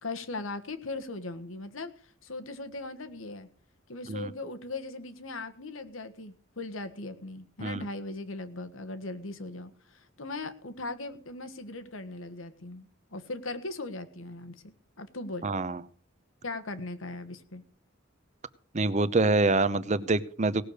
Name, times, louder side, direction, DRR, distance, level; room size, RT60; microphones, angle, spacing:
voice 1, 0.0-3.5 3.9-15.5 16.4-17.6, left 2 dB, 90° left, 9 dB, 1.6 m, -39 dB
voice 2, 15.4-15.8 18.7-20.6, right 3 dB, 35° right, 14 dB, 0.8 m, -26 dB
18.0 x 6.8 x 6.5 m, 0.43 s
head